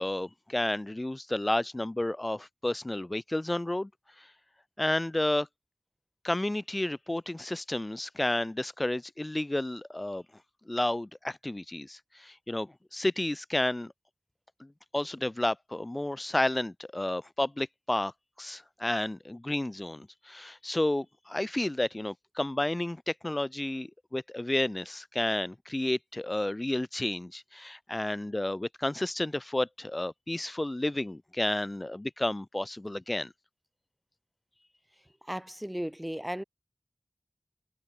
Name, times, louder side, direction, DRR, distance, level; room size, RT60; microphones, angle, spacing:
voice 1, 0.0-3.9 4.2-4.3 4.8-5.5 6.2-10.2 10.7-13.9 14.6-18.1 18.4-33.3, left 1 dB, 30° left, 4.7 m, -31 dB
voice 2, 35.3-36.4, equal, 10° right, 4.3 m, -35 dB
wide cardioid pair, 55°, 0 cm